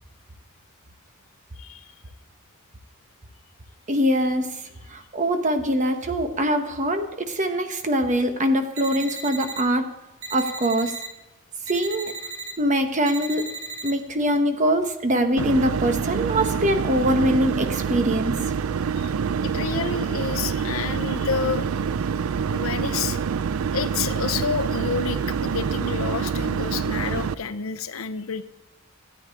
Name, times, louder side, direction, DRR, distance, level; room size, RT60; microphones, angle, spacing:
voice 1, 1.6-1.9 19.0-19.1 19.4-21.7 22.5-23.2 23.7-28.4, left 6 dB, 80° left, 12 dB, 0.7 m, -29 dB
voice 2, 3.9-4.6 4.9-9.9 10.3-10.9 11.7-12.1 12.6-13.5 13.8-18.4, equal, 35° right, 7 dB, 1.1 m, -23 dB
sound 1, 8.8-9.6 10.2-11.1 11.7-12.5 13.1-13.9, right 3 dB, 70° right, 1.3 m, -35 dB
sound 2, 15.4-27.3, right 6 dB, 85° right, 0.4 m, -26 dB
13.5 x 9.0 x 3.6 m, 1.0 s
head